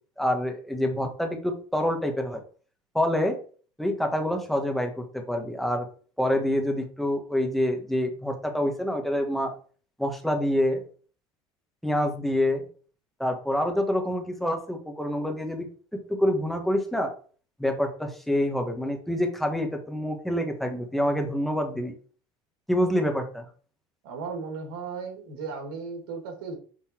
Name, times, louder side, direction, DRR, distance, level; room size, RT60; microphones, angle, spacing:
voice 1, 0.2-2.4 2.9-3.4 3.8-5.9 6.2-9.5 10.0-10.8 11.8-12.6 13.2-15.7 16.1-17.1 17.6-21.9 22.7-23.4, left 1 dB, ahead, 3 dB, 1.5 m, -26 dB
voice 2, 24.0-26.6, right 4 dB, 90° right, 2 dB, 2.6 m, -36 dB
5.9 x 4.2 x 4.5 m, 0.41 s
supercardioid pair, 110°, 12 cm